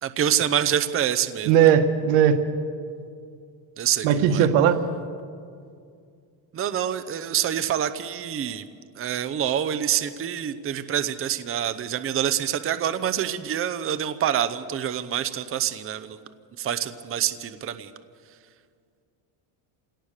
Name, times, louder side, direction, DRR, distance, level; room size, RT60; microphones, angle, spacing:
voice 1, 0.0-1.7 3.8-4.5 6.5-8.7 9.0-16.2 16.6-17.9, right 10 dB, 30° right, 12 dB, 0.8 m, -26 dB
voice 2, 1.4-2.4 4.0-4.8, right 9 dB, 90° right, 8 dB, 1.7 m, -18 dB
27.0 x 18.0 x 6.6 m, 2.3 s
cardioid pair, 145°, 47 cm